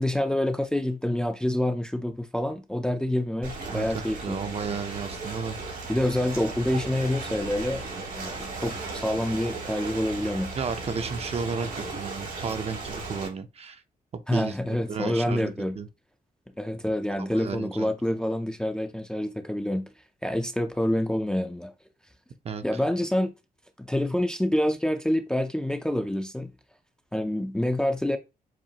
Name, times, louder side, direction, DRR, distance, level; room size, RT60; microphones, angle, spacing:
voice 1, 0.0-4.4 5.9-7.8 8.2-10.5 14.3-15.8 16.6-19.9 20.2-21.7 22.6-23.3 23.8-26.5 27.1-28.2, left 1 dB, 5° left, 0.4 m, -27 dB
Ocean, 3.4-13.3, right 3 dB, 85° right, 2.8 m, -36 dB
voice 2, 3.7-5.6 10.6-13.8 14.1-15.9 17.2-17.9 22.4-22.6, right 5 dB, 45° right, 0.6 m, -33 dB
7.4 x 2.5 x 2.8 m
wide cardioid pair, 140°, 15 cm